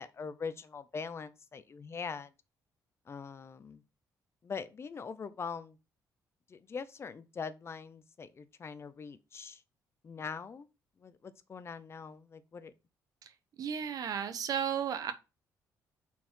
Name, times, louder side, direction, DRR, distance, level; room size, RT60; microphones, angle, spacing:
voice 1, 0.0-2.3 3.1-3.8 4.4-5.8 6.5-9.6 10.0-10.7 11.0-12.7, left 5 dB, 40° left, 0.6 m, -42 dB
voice 2, 13.6-15.1, right 8 dB, 60° right, 0.9 m, -34 dB
5.5 x 4.5 x 4.5 m
cardioid pair, 95°, 7 cm